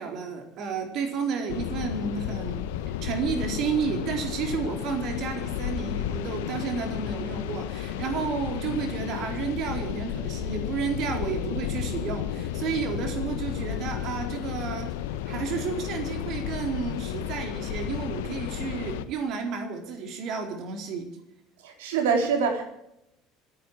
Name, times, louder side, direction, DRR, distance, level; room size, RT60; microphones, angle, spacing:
voice 1, 0.0-2.7 3.0-14.9 15.3-21.1, right 5 dB, 55° right, 4 dB, 4.0 m, -31 dB
sound 1, 1.5-19.0, left 10 dB, 70° left, 1.1 m, -32 dB
voice 2, 21.6-22.6, right 5 dB, 75° right, 4 dB, 3.5 m, -24 dB
27.0 x 10.0 x 4.7 m, 0.83 s
hypercardioid pair, 65°, 0 cm